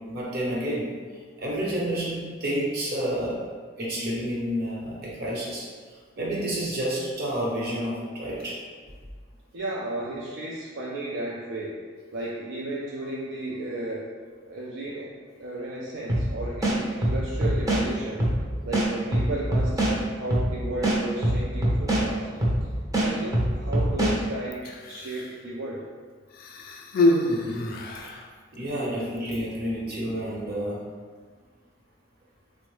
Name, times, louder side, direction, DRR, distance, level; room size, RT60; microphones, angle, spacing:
voice 1, 0.1-0.9 1.4-3.4 3.8-5.7 6.2-8.5 27.3-27.7 28.0-28.1 28.5-30.8, equal, 55° right, -5 dB, 0.9 m, -29 dB
voice 2, 9.5-11.8 12.1-14.1 14.5-15.1 15.4-18.3 18.6-22.3 23.0-25.9, right 1 dB, 75° right, -5 dB, 0.4 m, -34 dB
sound 1, 16.1-16.3 16.6-17.8 18.2-18.4 18.7-19.9 20.3-20.5 20.8-22.0 22.4-22.6 22.9-24.1, right 1 dB, 20° right, 0.5 m, -23 dB
Human voice, 24.5-25.4 26.3-28.3 29.2-29.3, left 2 dB, 50° left, 0.3 m, -26 dB
3.7 x 2.0 x 3.1 m, 1.5 s
head